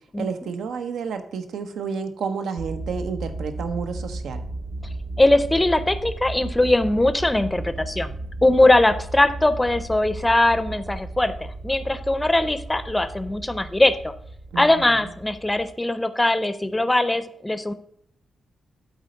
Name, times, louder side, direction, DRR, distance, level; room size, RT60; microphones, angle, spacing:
voice 1, 0.2-4.4 14.5-15.1, right 5 dB, 90° right, 7 dB, 0.8 m, -30 dB
sound 1, 2.6-15.7, right 2 dB, 40° right, 0.5 m, -35 dB
voice 2, 5.2-8.1 8.4-14.1 14.6-17.7, left 1 dB, 10° left, 12 dB, 0.5 m, -20 dB
8.2 x 4.1 x 6.5 m, 0.65 s
wide cardioid pair, 125°, 0 cm